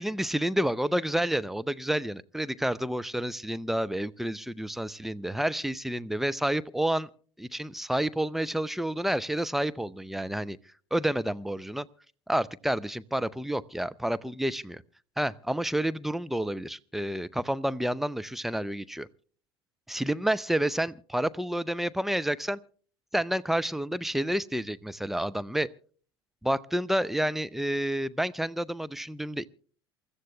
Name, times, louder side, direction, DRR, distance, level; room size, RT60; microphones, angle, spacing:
voice 1, 0.0-7.1 7.4-10.6 10.9-11.9 12.3-14.8 15.2-19.1 19.9-22.6 23.1-25.7 26.4-29.5, right 1 dB, ahead, 0.5 m, -29 dB
28.0 x 14.5 x 2.2 m
figure-of-eight pair, 70°, 14 cm